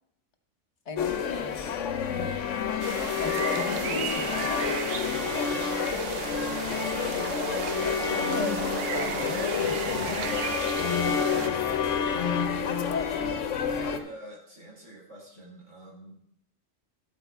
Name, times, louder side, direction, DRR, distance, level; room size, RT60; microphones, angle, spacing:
voice 1, 0.9-1.6 2.1-2.3 3.2-4.8 8.1-8.6 8.9-10.2, left 3 dB, 65° left, 6 dB, 1.5 m, -36 dB
sound 1, 1.0-14.0, left 7 dB, 85° left, 1.2 m, -29 dB
sound 2, 2.8-11.5, right 7 dB, 60° right, 0.9 m, -34 dB
voice 2, 6.3-7.4 8.4-8.6 11.1-12.8 13.9-16.2, right 1 dB, 85° right, -2 dB, 3.8 m, -47 dB
13.5 x 8.5 x 3.5 m, 0.69 s
omnidirectional pair, 1.3 m